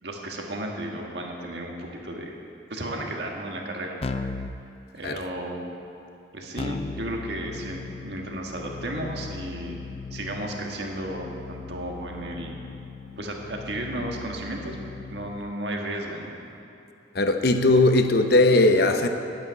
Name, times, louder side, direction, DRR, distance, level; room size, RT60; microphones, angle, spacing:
voice 1, 0.0-2.4 2.7-4.3 4.9-5.7 6.3-9.8 10.1-12.6 13.2-14.8 15.1-16.3, right 1 dB, 65° right, 0 dB, 1.6 m, -33 dB
Keyboard (musical), 4.0-4.6 6.6-15.5, left 4 dB, 35° left, 0.4 m, -38 dB
voice 2, 17.1-19.1, left 2 dB, 60° left, 7 dB, 0.8 m, -19 dB
8.8 x 8.7 x 9.6 m, 2.8 s
head